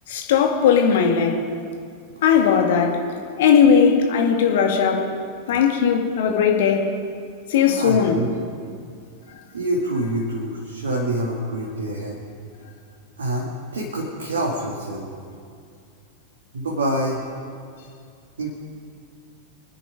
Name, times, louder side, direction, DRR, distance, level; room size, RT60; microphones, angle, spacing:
voice 1, 0.1-1.4 2.2-3.0 3.4-5.1 5.5-6.9 7.5-8.2, left 7 dB, 55° left, 2 dB, 2.1 m, -18 dB
voice 2, 7.6-8.3 9.5-12.2 13.2-15.1 16.5-17.2 18.4-18.5, right 1 dB, 70° right, -2 dB, 2.1 m, -26 dB
25.0 x 10.0 x 4.9 m, 2.3 s
figure-of-eight pair, 90°, 0 cm